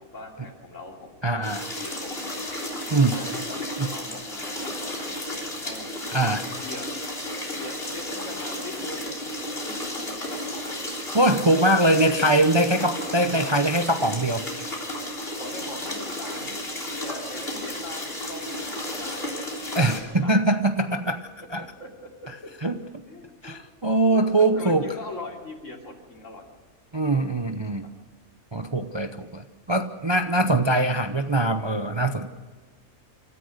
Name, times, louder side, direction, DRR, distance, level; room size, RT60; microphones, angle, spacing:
voice 1, 0.0-1.5 1.8-2.1 3.1-3.6 3.9-4.7 5.1-5.9 6.6-6.9 7.6-9.6 10.0-10.5 15.4-16.4 16.9-18.0 18.3-20.4 21.4-22.3 23.1-23.7 24.0-26.5 27.1-27.3 27.6-27.7, left 2 dB, 65° left, 1 dB, 3.4 m, -41 dB
voice 2, 1.2-1.6 2.9-3.2 3.8-3.9 6.1-6.5 11.1-14.4 19.7-21.6 22.6-22.7 23.4-24.9 26.9-27.9 28.5-32.3, right 1 dB, 25° right, 7 dB, 0.7 m, -22 dB
sound 1, 1.4-20.0, left 1 dB, 45° left, 4.0 m, -33 dB
27.5 x 14.0 x 6.6 m, 1.3 s
omnidirectional pair, 1.4 m